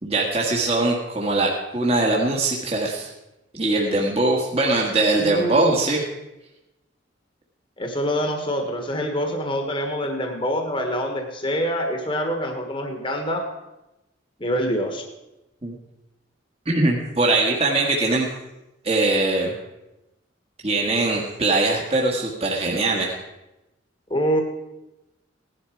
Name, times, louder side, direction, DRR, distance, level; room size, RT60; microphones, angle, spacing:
voice 1, 0.0-3.1 3.5-6.0 15.6-15.7 16.6-18.3 18.8-19.5 20.6-23.2, right 2 dB, 30° right, -1 dB, 1.6 m, -21 dB
voice 2, 5.2-5.8 7.8-13.4 14.4-15.0 24.1-24.4, equal, 25° left, 4 dB, 1.5 m, -25 dB
17.0 x 11.0 x 4.6 m, 0.98 s
head